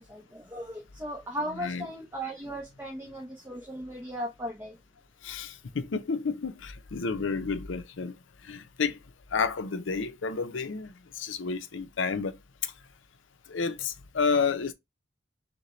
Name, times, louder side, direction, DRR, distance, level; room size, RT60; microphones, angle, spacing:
voice 1, 0.0-4.8, equal, 10° right, 0.8 m, -37 dB
voice 2, 1.5-1.9 5.2-8.1 8.5-9.0 9.3-10.9 11.2-12.3 13.5-14.7, left 5 dB, 85° left, 0.6 m, -30 dB
6.6 x 2.2 x 3.1 m
head